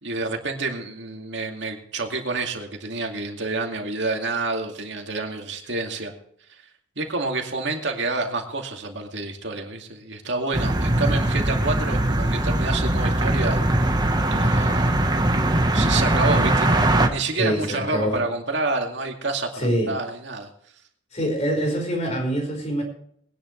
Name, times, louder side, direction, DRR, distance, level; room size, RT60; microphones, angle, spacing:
voice 1, 0.0-6.1 6.5-6.6 7.0-13.6 14.3-14.9 15.7-20.5, right 3 dB, 65° right, 3 dB, 2.4 m, -28 dB
sound 1, 10.5-17.1, right 1 dB, 20° right, 1.2 m, -21 dB
voice 2, 17.3-18.2 19.5-19.9 21.1-22.8, equal, 35° left, 1 dB, 5.1 m, -25 dB
21.0 x 10.5 x 3.3 m, 0.64 s
head